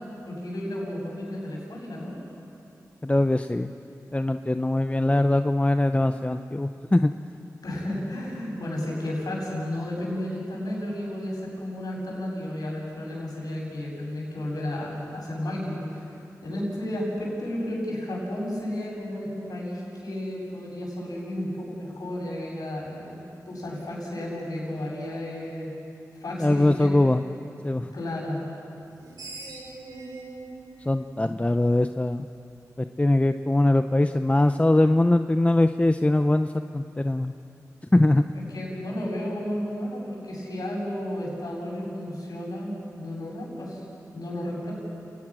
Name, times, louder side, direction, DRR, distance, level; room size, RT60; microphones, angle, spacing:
voice 1, 0.2-2.2 7.6-16.0 16.4-23.2 23.4-25.7 26.2-26.9 27.9-28.4 38.3-43.8 44.1-44.7, left 1 dB, 75° left, -3 dB, 7.8 m, -32 dB
voice 2, 3.0-3.7 4.1-7.1 26.4-27.2 27.6-27.9 30.9-32.3 32.8-37.3 37.9-38.2, left 1 dB, 20° left, 8 dB, 0.8 m, -22 dB
Screech, 28.8-32.1, right 3 dB, 75° right, 5.8 m, -42 dB
29.5 x 21.0 x 6.3 m, 2.7 s
cardioid pair, 40°, 7 cm